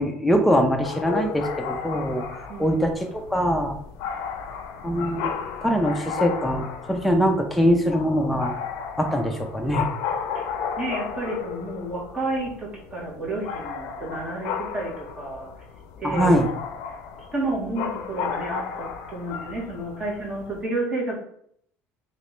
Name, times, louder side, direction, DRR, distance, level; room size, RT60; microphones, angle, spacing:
voice 1, 0.0-3.8 4.8-5.3 5.6-8.5 9.0-9.9 16.0-16.5, equal, ahead, 3 dB, 0.3 m, -23 dB
sound 1, 0.8-20.6, left 7 dB, 90° left, 0.4 m, -34 dB
voice 2, 10.8-15.5 16.0-16.3 17.3-21.2, right 2 dB, 20° right, -4 dB, 1.0 m, -30 dB
3.1 x 2.8 x 3.0 m, 0.67 s
cardioid pair, 170°, 5 cm